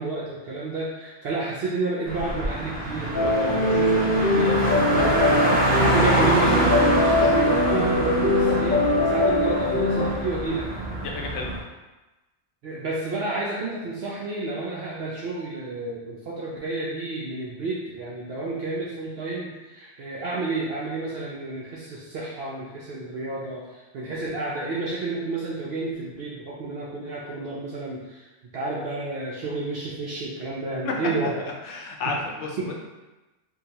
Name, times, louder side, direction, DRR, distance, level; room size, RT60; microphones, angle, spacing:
voice 1, 0.0-10.7 12.6-28.3 28.5-31.3 32.6-32.7, right 3 dB, 65° right, -6 dB, 0.7 m, -30 dB
Car, 2.0-11.6, right 1 dB, 10° left, 1.0 m, -26 dB
sound 1, 3.1-10.1, left 2 dB, 50° left, 0.8 m, -22 dB
voice 2, 6.1-6.6 11.0-11.5 30.8-30.9 31.6-32.7, left 4 dB, 80° left, 0 dB, 0.9 m, -31 dB
3.8 x 2.2 x 2.8 m, 1.1 s
omnidirectional pair, 1.2 m